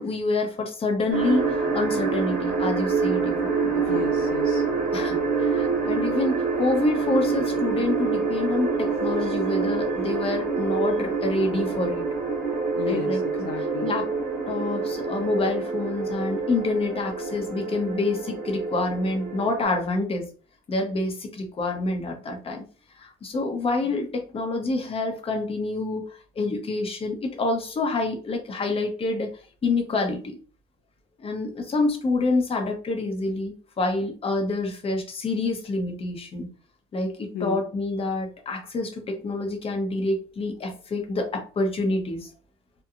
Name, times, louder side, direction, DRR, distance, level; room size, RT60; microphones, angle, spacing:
voice 1, 0.0-4.0 4.9-12.1 12.8-13.2 13.8-14.1 14.5-20.3 20.7-22.6 23.0-29.3 29.6-30.4 31.2-36.5 36.9-42.3, left 2 dB, 35° left, 3 dB, 0.8 m, -27 dB
sound 1, 1.1-19.6, right 4 dB, 50° right, 1.2 m, -26 dB
voice 2, 3.9-4.7 12.8-13.9 37.3-37.6, left 8 dB, 65° left, 5 dB, 0.4 m, -33 dB
2.8 x 2.2 x 2.5 m, 0.38 s
cardioid pair, 110°, 17 cm